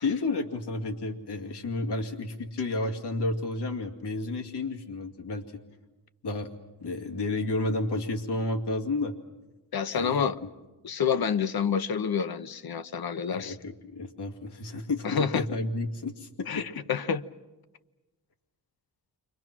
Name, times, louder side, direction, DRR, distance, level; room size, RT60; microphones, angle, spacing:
voice 1, 0.0-5.4 6.2-6.5 6.8-9.2 9.9-10.3 13.3-16.6, left 2 dB, 80° left, 2.4 m, -31 dB
voice 2, 9.7-10.4 10.8-13.6 15.0-15.4 16.5-17.2, left 7 dB, 60° left, 1.0 m, -28 dB
30.0 x 24.5 x 6.1 m
cardioid pair, 90°, 40 cm